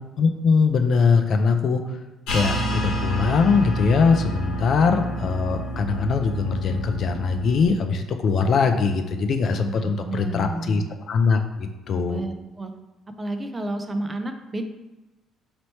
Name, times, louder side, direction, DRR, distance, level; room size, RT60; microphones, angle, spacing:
voice 1, 0.2-1.8 2.3-12.2, left 5 dB, 55° left, 6 dB, 0.4 m, -21 dB
sound 1, 2.3-7.7, equal, 85° left, 1.1 m, -29 dB
voice 2, 9.7-10.9 12.1-12.7 13.2-14.7, right 1 dB, 20° right, 6 dB, 0.4 m, -31 dB
3.1 x 2.9 x 4.2 m, 1.1 s
cardioid pair, 110°, 0 cm